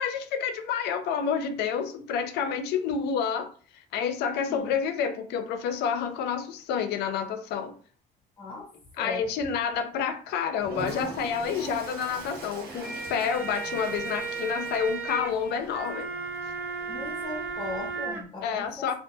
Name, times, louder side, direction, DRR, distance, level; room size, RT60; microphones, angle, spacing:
voice 1, 0.0-3.5 3.9-7.7 9.0-16.1 18.4-18.9, left 7 dB, 80° left, 0.4 m, -29 dB
voice 2, 8.4-8.7 9.0-9.3 16.9-18.9, left 2 dB, 30° left, 0.8 m, -38 dB
Toilet flush, 10.6-18.1, right 3 dB, 65° right, 0.8 m, -43 dB
sound 1, 12.6-18.2, right 4 dB, 10° right, 0.7 m, -35 dB
2.3 x 2.2 x 2.6 m
cardioid pair, 110°, 17 cm